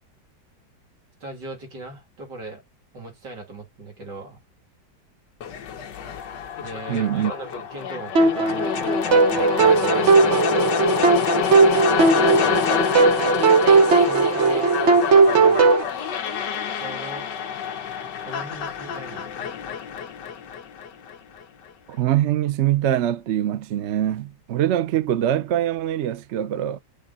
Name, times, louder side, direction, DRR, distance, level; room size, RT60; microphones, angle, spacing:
voice 1, 1.2-2.6 2.9-4.4 6.6-10.5 11.9-12.7 13.9-15.8 16.7-17.3 18.2-19.5, right 2 dB, 65° right, 3.3 m, -38 dB
sound 1, 5.4-21.4, left 7 dB, 65° left, 1.5 m, -27 dB
voice 2, 6.9-7.3 21.9-26.8, right 11 dB, 90° right, 0.6 m, -23 dB
sound 2, 8.2-15.8, right 4 dB, 45° right, 1.1 m, -17 dB
6.8 x 5.3 x 4.0 m
omnidirectional pair, 2.1 m